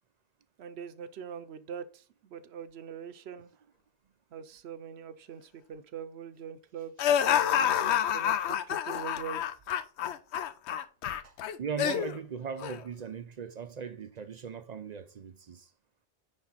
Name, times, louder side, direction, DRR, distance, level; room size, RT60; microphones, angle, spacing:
voice 1, 0.6-3.5 4.3-9.5, right 7 dB, 75° right, 0.9 m, -43 dB
sound 1, 7.0-12.2 12.6-12.8, left 9 dB, 85° left, 0.9 m, -28 dB
voice 2, 11.2-15.7, right 6 dB, 50° right, 0.5 m, -39 dB
9.8 x 3.5 x 4.0 m
omnidirectional pair, 1.1 m